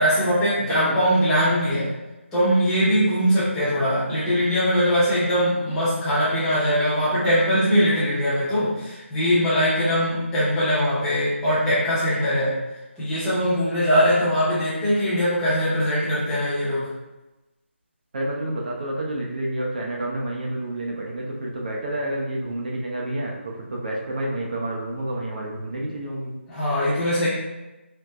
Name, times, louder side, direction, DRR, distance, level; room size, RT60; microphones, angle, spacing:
voice 1, 0.0-1.9 2.3-12.6 13.0-16.9 26.5-27.3, equal, 5° left, -11 dB, 0.7 m, -21 dB
voice 2, 18.1-23.3 23.7-26.3, right 1 dB, 40° right, -2 dB, 0.7 m, -29 dB
4.3 x 2.1 x 2.3 m, 1.0 s
figure-of-eight pair, 165°, 7 cm